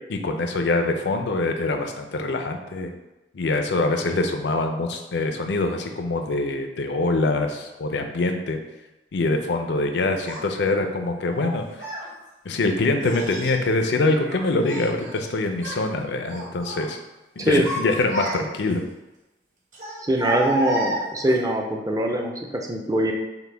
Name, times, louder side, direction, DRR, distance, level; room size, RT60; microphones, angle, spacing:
voice 1, 0.1-2.9 3.3-8.6 9.1-11.6 12.5-17.0 17.4-18.8, left 2 dB, 75° left, 5 dB, 0.5 m, -24 dB
Child speech kid speaking, 10.2-10.4 11.3-12.1 13.0-13.6 14.0-15.3 15.5-15.8 16.3-16.9 17.3-18.7 19.7-21.4, equal, 45° right, 1.2 m, -31 dB
voice 2, 20.0-23.1, right 1 dB, 20° right, 2 dB, 0.4 m, -23 dB
5.8 x 2.2 x 3.3 m, 1.0 s
head